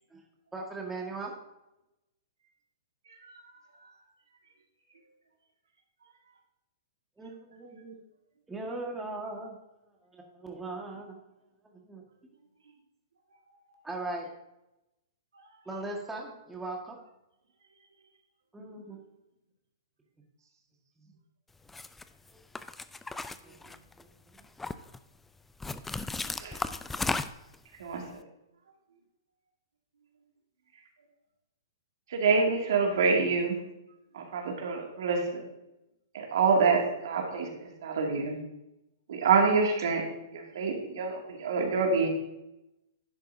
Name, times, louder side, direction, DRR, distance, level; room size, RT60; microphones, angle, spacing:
voice 1, 0.5-1.3 7.2-8.0 8.5-9.6 10.1-11.2 11.7-12.0 13.8-14.3 15.7-17.0 18.5-19.0 23.4-24.4, right 2 dB, 10° right, -1 dB, 1.6 m, -39 dB
voice 2, 3.1-3.9 12.6-12.7 13.5-13.8 15.3-15.7 26.1-26.3 40.5-40.9, right 3 dB, 90° right, 1 dB, 1.7 m, -56 dB
sound 1, 21.7-22.0 22.6-24.0 24.4-25.0 25.6-27.6, left 3 dB, 5° left, 0.3 m, -35 dB
voice 3, 32.1-33.6 34.1-35.5 36.1-38.4 39.1-40.0 40.3-42.1, right 4 dB, 70° right, 1 dB, 2.3 m, -26 dB
11.0 x 8.0 x 2.7 m, 0.92 s
hypercardioid pair, 130°, 2 cm